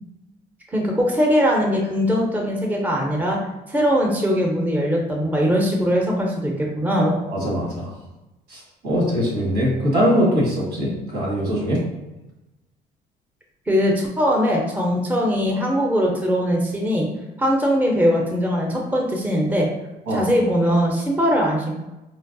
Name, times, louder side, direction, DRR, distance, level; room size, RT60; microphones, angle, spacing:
voice 1, 0.7-3.4 3.7-7.1 13.7-17.1 17.4-19.7 20.1-21.8, equal, 10° right, -1 dB, 0.6 m, -21 dB
voice 2, 7.0-7.9 8.5-11.8 20.1-20.3, equal, 90° right, -4 dB, 1.5 m, -22 dB
4.5 x 2.0 x 2.5 m, 0.99 s
cardioid pair, 110°, 17 cm